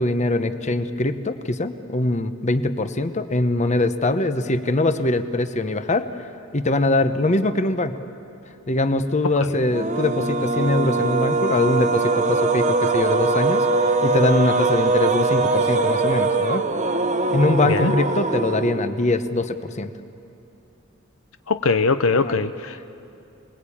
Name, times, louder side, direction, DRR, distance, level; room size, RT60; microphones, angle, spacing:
voice 1, 0.0-6.1 6.5-8.0 8.7-16.6 17.3-19.9 22.2-22.4, left 2 dB, 35° left, 9 dB, 1.0 m, -22 dB
voice 2, 9.2-9.6 17.6-18.0 21.5-22.8, left 4 dB, 75° left, 10 dB, 0.7 m, -22 dB
sound 1, 9.7-19.0, right 3 dB, 35° right, 1.1 m, -22 dB
28.0 x 20.5 x 8.6 m, 2.7 s
head